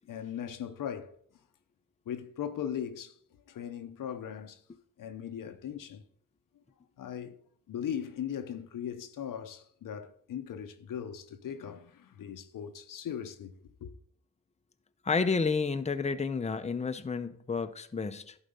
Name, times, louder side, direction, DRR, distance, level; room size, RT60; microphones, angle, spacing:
voice 1, 0.1-1.2 2.1-3.2 3.5-4.6 5.0-6.0 7.0-7.4 7.7-13.5 13.8-13.9, left 9 dB, 75° left, 0.8 m, -38 dB
voice 2, 15.0-18.3, left 4 dB, 20° left, 0.6 m, -30 dB
11.5 x 4.1 x 5.5 m
supercardioid pair, 45°, 32 cm